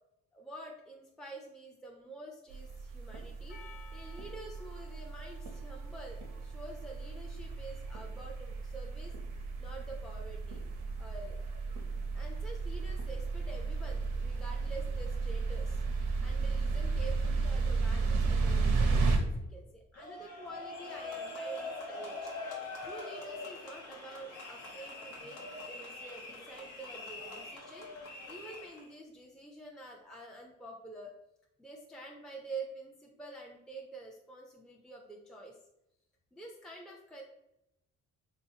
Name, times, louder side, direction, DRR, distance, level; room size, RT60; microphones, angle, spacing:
voice 1, 0.3-3.6 3.9-9.1 9.6-10.6 11.0-11.5 12.1-15.8 16.2-22.2 22.8-25.4 25.7-27.9 28.3-31.1 31.6-35.6 36.3-37.2, right 2 dB, ahead, -1 dB, 0.5 m, -48 dB
sound 1, 2.5-19.2, right 4 dB, 90° right, 0.8 m, -33 dB
Percussion, 3.5-8.0, left 4 dB, 35° left, 1.0 m, -59 dB
sound 2, 20.0-28.9, left 2 dB, 90° left, 0.9 m, -43 dB
3.8 x 2.8 x 2.8 m, 0.85 s
cardioid pair, 90°, 30 cm